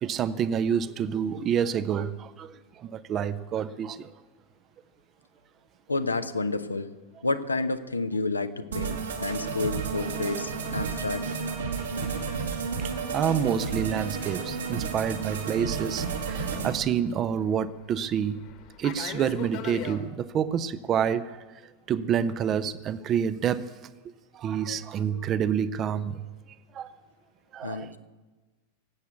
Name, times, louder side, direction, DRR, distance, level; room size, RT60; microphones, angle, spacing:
voice 1, 0.0-4.1 12.8-18.4 18.8-21.6 21.9-23.7 24.3-26.2 26.7-26.9 27.5-27.9, right 8 dB, 30° right, 15 dB, 0.6 m, -28 dB
voice 2, 5.9-6.9 7.2-11.3 27.6-28.0, left 3 dB, 80° left, 10 dB, 0.8 m, -30 dB
sound 1, 8.7-16.7, right 5 dB, 75° right, 2.5 m, -32 dB
Fixed-wing aircraft airplane, 13.8-20.0, left 10 dB, 45° left, 1.4 m, -43 dB
18.0 x 8.2 x 8.3 m, 1.3 s
figure-of-eight pair, 90°, 0 cm